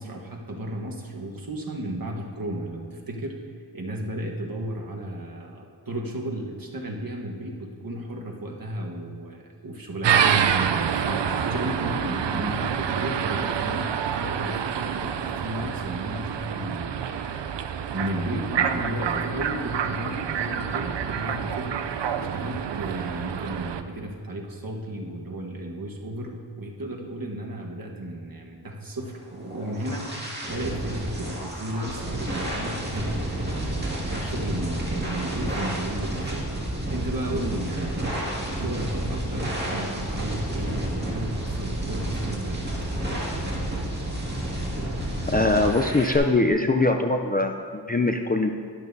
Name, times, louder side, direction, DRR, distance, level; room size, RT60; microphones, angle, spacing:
voice 1, 0.0-3.3 3.7-10.7 10.9-17.3 17.6-21.8 22.1-36.4 36.7-38.3 38.6-42.6, right 1 dB, 50° right, 0 dB, 1.3 m, -34 dB
sound 1, 10.0-23.8, right 8 dB, 75° right, 0.5 m, -27 dB
sound 2, 29.2-46.2, right 1 dB, 25° right, 2.0 m, -30 dB
voice 2, 45.3-48.5, left 2 dB, 20° left, 4 dB, 0.4 m, -22 dB
12.0 x 11.0 x 2.7 m, 2.2 s
wide cardioid pair, 90°, 43 cm